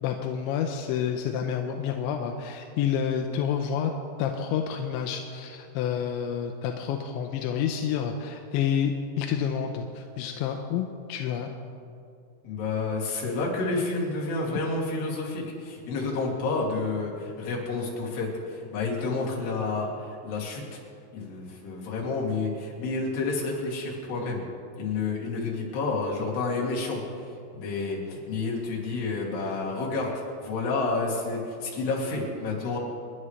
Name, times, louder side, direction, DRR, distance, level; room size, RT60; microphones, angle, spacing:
voice 1, 0.0-3.9 4.2-11.5, left 8 dB, 80° left, 4 dB, 2.8 m, -29 dB
voice 2, 12.4-20.8 21.1-24.4 24.8-30.1 30.4-32.8, left 3 dB, 60° left, -4 dB, 4.4 m, -30 dB
29.0 x 11.0 x 3.2 m, 2.5 s
omnidirectional pair, 5.7 m